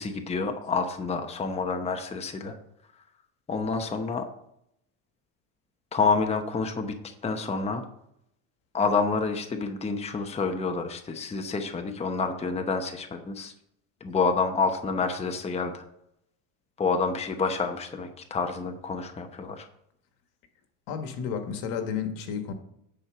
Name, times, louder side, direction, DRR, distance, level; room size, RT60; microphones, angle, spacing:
voice 1, 0.0-2.6 3.5-4.3 5.9-7.8 8.7-13.5 14.0-15.8 16.8-19.7, left 4 dB, 15° left, 5 dB, 0.9 m, -28 dB
voice 2, 20.9-22.5, left 7 dB, 70° left, 6 dB, 1.6 m, -32 dB
9.9 x 4.5 x 6.0 m, 0.76 s
supercardioid pair, 115°, 41 cm